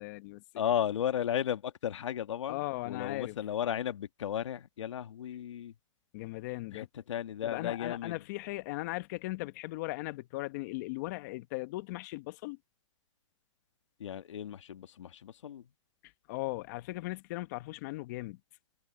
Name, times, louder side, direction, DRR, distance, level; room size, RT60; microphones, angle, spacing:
voice 1, 0.0-0.4 2.5-3.4 6.1-6.9 7.4-12.6 16.0-18.4, left 20 dB, 35° left, 1.0 m, -38 dB
voice 2, 0.6-5.7 6.7-8.2 14.0-15.7, left 10 dB, 75° left, 1.8 m, -34 dB
hypercardioid pair, 155°, 16 cm